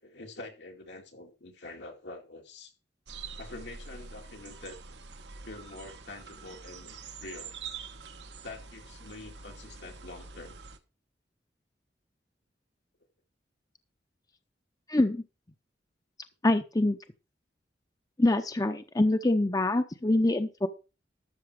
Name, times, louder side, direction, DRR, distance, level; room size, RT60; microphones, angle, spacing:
voice 1, 0.0-2.7 3.4-4.8 5.4-7.5 8.4-10.6, left 2 dB, 85° left, 2.6 m, -45 dB
sound 1, 3.1-10.8, right 5 dB, 90° right, 1.3 m, -45 dB
voice 2, 14.9-15.2 16.4-17.0 18.2-20.7, left 2 dB, 20° left, 0.6 m, -25 dB
13.0 x 6.9 x 4.8 m
head